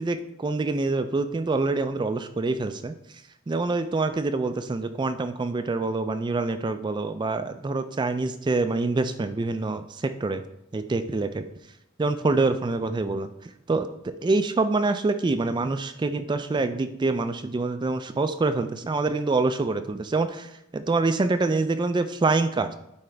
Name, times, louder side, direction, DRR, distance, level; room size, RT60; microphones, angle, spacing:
voice 1, 0.0-2.9 3.5-10.4 10.7-11.5 12.0-22.7, right 3 dB, 20° right, 9 dB, 0.3 m, -26 dB
11.5 x 4.7 x 3.3 m, 0.81 s
head